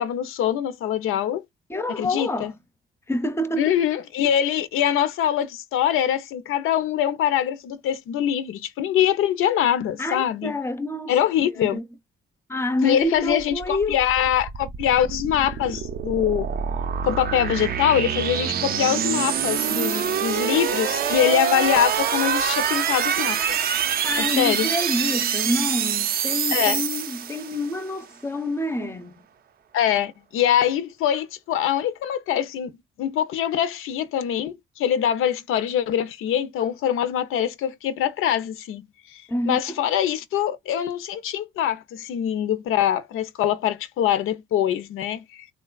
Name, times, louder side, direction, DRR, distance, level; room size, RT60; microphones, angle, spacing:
voice 1, 0.0-1.4 2.0-2.5 3.6-10.6 11.1-11.8 12.8-16.5 17.0-23.4 24.2-24.7 26.5-26.8 29.7-32.7 33.0-38.9 39.1-45.5, left 10 dB, 85° left, 0.6 m, -23 dB
voice 2, 1.7-2.5 3.1-3.8 10.0-11.1 11.6-11.8 12.5-14.0 24.0-29.1 39.3-39.8, left 1 dB, 10° left, 0.5 m, -27 dB
sound 1, 13.2-27.8, right 8 dB, 45° right, 0.4 m, -25 dB
3.7 x 2.3 x 2.2 m
cardioid pair, 135°, 21 cm